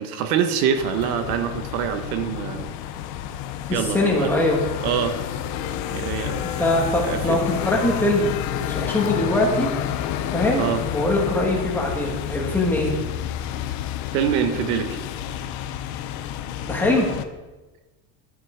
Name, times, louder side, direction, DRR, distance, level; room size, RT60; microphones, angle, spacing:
voice 1, 0.0-2.7 3.7-4.3 4.8-5.2 5.9-6.5 7.0-7.4 10.6-10.8 14.1-15.0, right 8 dB, 75° right, 8 dB, 1.3 m, -25 dB
sound 1, 0.8-17.2, left 10 dB, 40° left, 0.7 m, -30 dB
voice 2, 3.7-4.6 6.6-9.7 10.3-10.6 10.9-12.9 16.6-17.1, left 1 dB, 5° left, -2 dB, 1.5 m, -22 dB
12.0 x 7.8 x 5.0 m, 1.2 s
cardioid pair, 175°, 44 cm